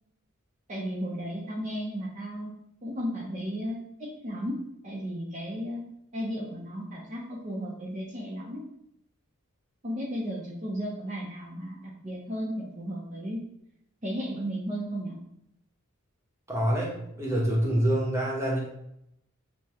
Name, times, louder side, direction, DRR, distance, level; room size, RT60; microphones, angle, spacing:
voice 1, 0.7-2.5 2.8-5.8 6.1-8.6 9.8-13.4 14.0-15.2, equal, 35° right, -4 dB, 0.6 m, -34 dB
voice 2, 16.5-18.6, right 1 dB, 10° right, -4 dB, 0.9 m, -26 dB
6.4 x 2.2 x 2.9 m, 0.77 s
head